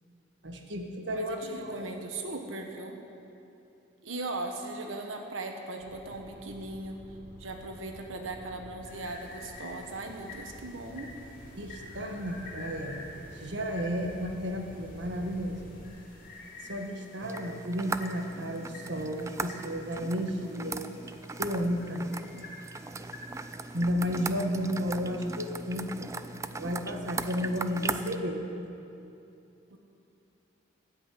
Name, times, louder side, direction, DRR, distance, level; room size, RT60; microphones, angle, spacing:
voice 1, 0.4-1.9 11.6-13.0 13.3-15.6 16.7-20.8 21.4-22.1 23.7-26.1 26.6-28.4, equal, 65° right, 3 dB, 1.6 m, -32 dB
voice 2, 1.1-3.0 4.0-7.0 7.4-11.1 29.7-29.8, right 2 dB, 85° right, 4 dB, 1.4 m, -38 dB
sound 1, 5.8-15.8, equal, 30° right, 1.6 m, -50 dB
sound 2, 8.8-23.8, left 2 dB, 45° left, 3.5 m, -49 dB
sound 3, 17.2-28.2, right 3 dB, 15° right, 0.3 m, -39 dB
14.5 x 8.3 x 9.6 m, 2.8 s
head